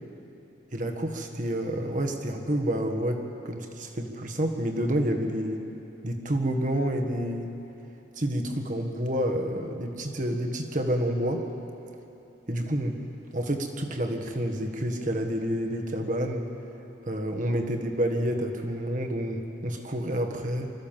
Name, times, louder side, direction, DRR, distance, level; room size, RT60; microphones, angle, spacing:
voice 1, 0.7-5.6 6.0-7.5 8.1-11.5 12.5-13.0 13.3-16.5 17.0-20.7, right 1 dB, 40° right, 4 dB, 1.6 m, -29 dB
25.0 x 14.5 x 7.5 m, 3.0 s
head